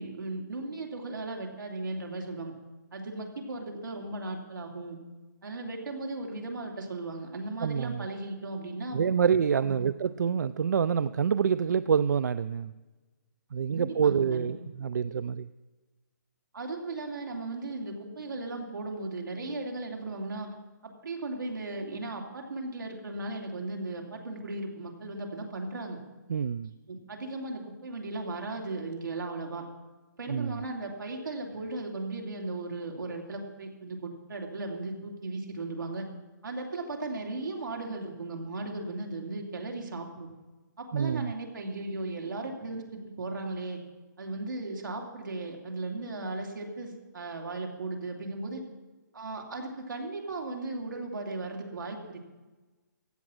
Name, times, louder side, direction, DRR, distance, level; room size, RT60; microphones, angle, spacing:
voice 1, 0.0-2.5 2.9-5.0 5.4-9.1 9.6-9.8 13.7-14.5 16.5-20.5 20.8-26.0 26.9-29.6 30.2-36.1 36.4-40.3 40.8-43.8 44.2-48.6 49.1-52.3, right 2 dB, 90° right, 1 dB, 2.9 m, -36 dB
voice 2, 7.6-8.1 8.9-12.7 13.5-15.5 26.3-26.7 30.3-30.7 40.9-41.3, right 7 dB, 65° right, 15 dB, 0.4 m, -27 dB
15.0 x 8.6 x 6.3 m, 1.2 s
hypercardioid pair, 170°, 10 cm